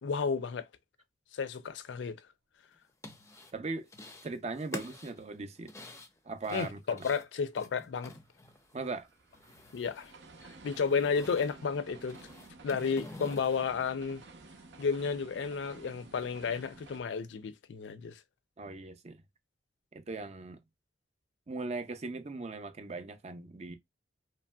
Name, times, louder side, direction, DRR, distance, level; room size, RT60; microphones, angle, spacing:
voice 1, 0.0-0.6 1.3-2.2 6.5-8.1 9.7-10.1 10.6-12.2 12.6-14.2 14.8-18.2, left 5 dB, 80° left, 0.4 m, -32 dB
sound 1, 2.8-3.5 3.9-4.3 4.6-8.8 9.1-10.2 10.4-11.5 12.0-13.6, left 2 dB, 15° left, 0.5 m, -47 dB
voice 2, 3.5-3.9 4.2-5.7 6.2-7.0 8.7-9.1 18.6-19.2 19.9-20.6 21.5-23.8, right 3 dB, 40° right, 0.5 m, -39 dB
sound 2, 7.7-17.0, right 3 dB, 70° right, 0.7 m, -53 dB
3.0 x 2.6 x 2.2 m
head